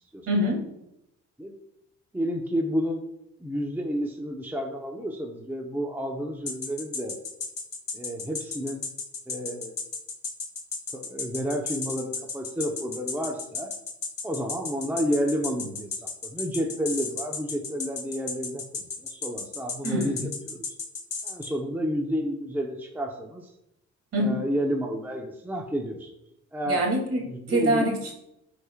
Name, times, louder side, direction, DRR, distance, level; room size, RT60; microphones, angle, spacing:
voice 1, 0.3-0.7 19.8-20.3 24.1-24.4 26.7-28.1, right 1 dB, 55° right, -1 dB, 2.7 m, -25 dB
voice 2, 2.1-3.0 3.4-7.2 7.9-8.9 9.3-9.8 10.9-13.7 14.2-20.7 21.2-23.5 24.2-26.1 26.5-26.8 27.3-27.9, equal, 5° right, 1 dB, 0.9 m, -30 dB
sound 1, 6.5-21.5, left 4 dB, 55° left, 1.9 m, -33 dB
12.0 x 4.9 x 2.4 m, 0.82 s
cardioid pair, 90°, 29 cm